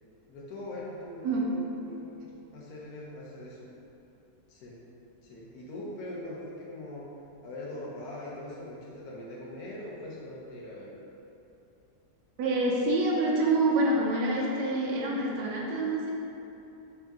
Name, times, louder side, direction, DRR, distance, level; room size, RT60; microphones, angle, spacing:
voice 1, 0.3-3.7 4.5-4.8 5.2-7.1 7.4-11.0, left 1 dB, 65° left, -5 dB, 1.3 m, -42 dB
voice 2, 1.2-1.6 12.4-16.1, right 2 dB, 85° right, -3 dB, 1.2 m, -26 dB
4.1 x 3.6 x 3.5 m, 2.8 s
omnidirectional pair, 1.8 m